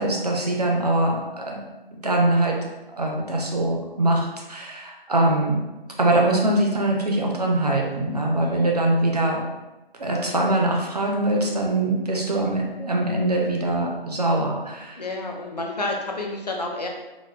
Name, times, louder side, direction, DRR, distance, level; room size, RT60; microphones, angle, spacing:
voice 1, 0.0-1.6 1.9-2.6 3.0-5.6 6.0-9.4 10.0-15.0, right 1 dB, 40° right, 0 dB, 0.5 m, -23 dB
voice 2, 8.4-8.8 15.0-16.9, left 2 dB, 45° left, 0 dB, 0.4 m, -30 dB
3.9 x 2.1 x 2.2 m, 1.0 s
figure-of-eight pair, 170°, 30 cm